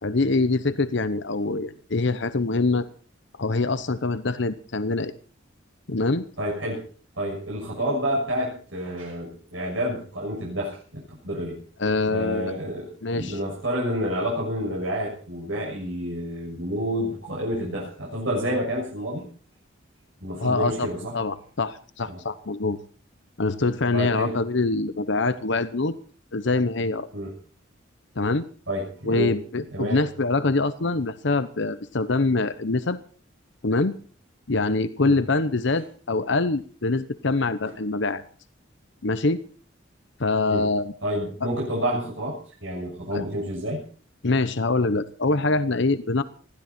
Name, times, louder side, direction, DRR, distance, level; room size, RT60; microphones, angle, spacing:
voice 1, 0.0-2.9 3.4-5.1 5.9-6.3 11.8-12.5 13.0-13.4 20.4-20.9 21.1-22.8 23.4-25.9 26.3-27.1 28.2-28.5 29.0-33.0 33.6-34.0 34.5-38.2 39.0-39.4 40.2-40.9 41.4-41.5 43.1-43.2 44.2-46.2, left 3 dB, 65° left, 12 dB, 0.9 m, -24 dB
voice 2, 6.4-6.8 7.2-11.6 12.1-19.2 20.2-21.1 22.0-22.2 23.9-24.4 27.1-27.3 28.7-29.3 29.7-30.1 35.0-35.2 40.5-40.6 41.0-43.8, equal, 75° right, -3 dB, 6.6 m, -29 dB
20.5 x 15.5 x 4.4 m, 0.43 s
head